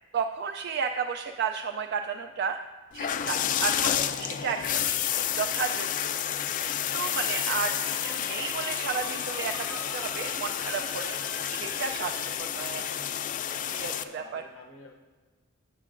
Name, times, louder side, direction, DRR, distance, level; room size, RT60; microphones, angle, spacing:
voice 1, 0.1-2.6 2.9-5.0 5.4-6.1 6.6-7.8 8.0-11.2 11.5-12.8 13.7-14.4, right 6 dB, 55° right, 6 dB, 0.3 m, -33 dB
sound 1, 2.9-14.0, left 10 dB, 40° left, 0.3 m, -30 dB
voice 2, 6.8-7.1 13.8-15.0, left 2 dB, 65° left, 1 dB, 0.7 m, -49 dB
sound 2, 7.3-12.4, right 2 dB, 85° right, 1.7 m, -44 dB
12.5 x 7.5 x 2.5 m, 1.4 s
head